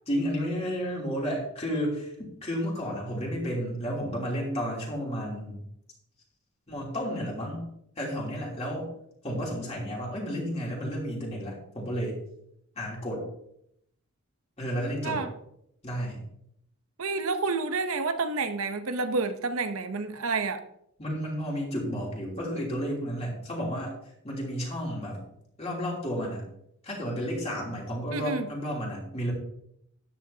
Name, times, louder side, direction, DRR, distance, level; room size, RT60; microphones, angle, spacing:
voice 1, 0.1-2.1 2.4-5.6 6.7-7.7 8.0-8.9 9.2-12.2 12.7-13.2 14.6-15.2 15.8-16.2 21.0-23.9 24.2-25.2 25.6-26.4 26.8-29.3, equal, 30° left, -3 dB, 3.2 m, -32 dB
voice 2, 17.0-20.6 28.1-28.5, right 3 dB, 70° right, 8 dB, 0.8 m, -29 dB
13.0 x 10.5 x 2.8 m, 0.75 s
head